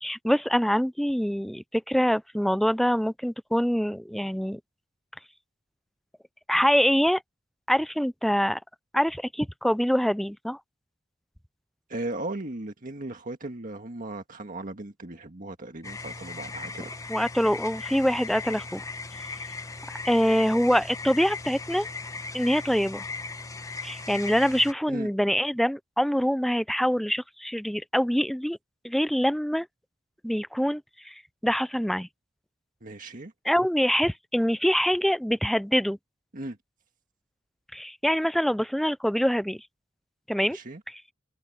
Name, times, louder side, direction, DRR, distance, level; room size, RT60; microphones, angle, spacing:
voice 1, 0.0-4.6 6.5-7.2 7.7-8.6 8.9-10.6 17.1-18.9 19.9-21.9 22.3-23.1 23.8-28.6 28.8-29.7 30.2-32.1 33.5-36.0 37.7-39.6 40.3-40.6, equal, ahead, 0.3 m, -25 dB
voice 2, 11.9-17.0 24.9-25.1 32.8-33.3 36.3-36.6 40.5-40.8, right 2 dB, 45° right, 1.7 m, -37 dB
sound 1, 15.8-24.7, left 4 dB, 20° left, 0.8 m, -38 dB
head